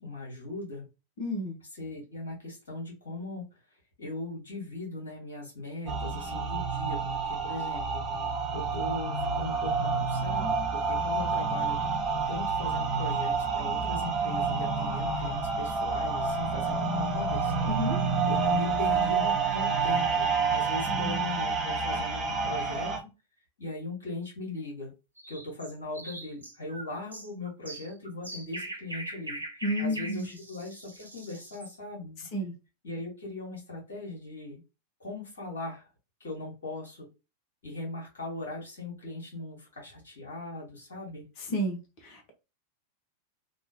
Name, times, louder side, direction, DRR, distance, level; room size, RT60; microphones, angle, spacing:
voice 1, 0.0-0.8 1.7-3.5 4.0-8.0 8.5-11.8 12.3-17.7 18.2-23.1 23.6-24.9 25.3-29.4 29.8-32.3 32.8-34.6 35.0-35.9 36.2-37.1 37.6-41.2, left 2 dB, 65° left, -3 dB, 1.6 m, -39 dB
voice 2, 1.2-1.6 17.7-18.0 20.9-21.2 29.6-30.3 32.3-32.5 41.5-42.3, equal, 45° left, 4 dB, 0.9 m, -31 dB
sound 1, 5.9-23.0, right 4 dB, 25° right, 0.8 m, -29 dB
sound 2, 25.2-31.7, right 1 dB, 80° right, 0.6 m, -42 dB
3.1 x 2.4 x 2.7 m, 0.28 s
figure-of-eight pair, 90°, 0 cm